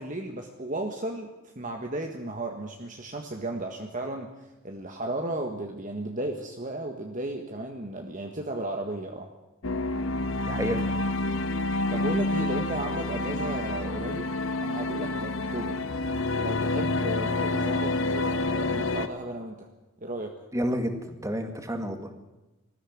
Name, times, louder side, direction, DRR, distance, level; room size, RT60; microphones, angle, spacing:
voice 1, 0.0-9.3 11.9-14.3 14.6-15.8 16.4-19.7 20.0-20.4, right 1 dB, 35° right, 3 dB, 1.7 m, -34 dB
sound 1, 9.6-19.1, left 2 dB, 65° left, 1.2 m, -28 dB
voice 2, 10.4-10.9 20.5-20.9 21.2-22.3, equal, 15° right, 6 dB, 2.2 m, -30 dB
19.5 x 14.5 x 9.6 m, 1.0 s
head